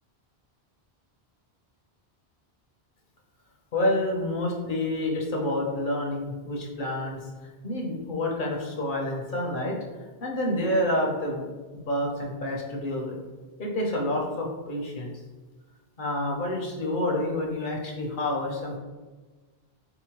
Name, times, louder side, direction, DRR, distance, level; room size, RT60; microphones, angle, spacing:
voice 1, 3.7-7.2 7.6-9.8 10.2-11.5 11.9-13.1 13.6-15.1 16.0-18.8, left 1 dB, 55° left, -1 dB, 0.8 m, -28 dB
4.0 x 2.8 x 2.9 m, 1.3 s
omnidirectional pair, 1.1 m